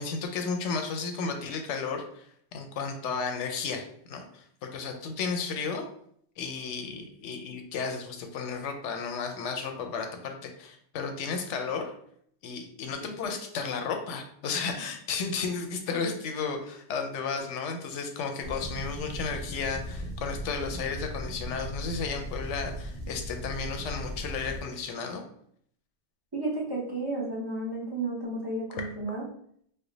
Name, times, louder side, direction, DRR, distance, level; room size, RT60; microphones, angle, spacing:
voice 1, 0.0-2.3 2.5-5.8 6.4-11.9 12.4-25.2 28.8-28.9, left 5 dB, 85° left, 4 dB, 0.9 m, -33 dB
sound 1, 18.4-24.6, right 1 dB, 65° right, 0.8 m, -38 dB
voice 2, 26.3-29.2, right 2 dB, 25° right, -4 dB, 0.7 m, -32 dB
3.2 x 2.1 x 3.8 m, 0.66 s
omnidirectional pair, 1.2 m